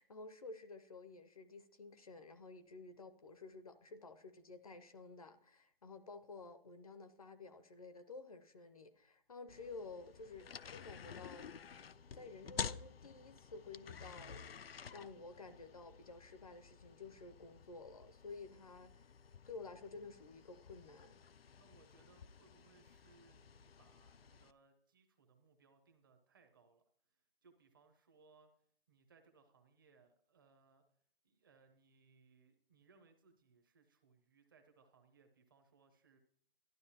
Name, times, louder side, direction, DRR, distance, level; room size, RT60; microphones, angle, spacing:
voice 1, 0.0-11.6 12.1-19.1 19.5-21.2, left 3 dB, 40° left, 0.6 m, -52 dB
sound 1, 9.5-24.5, left 7 dB, 85° left, 0.5 m, -51 dB
voice 2, 21.6-26.8 27.4-28.5 28.9-30.8 31.2-36.2, right 4 dB, 25° right, 0.7 m, -69 dB
12.0 x 11.5 x 2.8 m
figure-of-eight pair, 160°, 29 cm